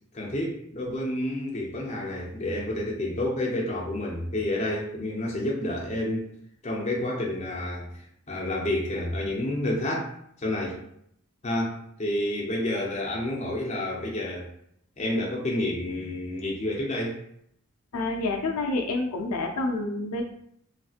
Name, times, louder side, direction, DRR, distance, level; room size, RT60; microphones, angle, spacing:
voice 1, 0.1-6.3 6.6-7.9 8.3-10.1 10.4-10.8 11.4-14.5 15.0-17.2, left 1 dB, 30° left, -2 dB, 0.6 m, -29 dB
voice 2, 17.9-20.2, left 2 dB, 80° left, 2 dB, 0.5 m, -28 dB
3.2 x 2.8 x 2.4 m, 0.70 s
head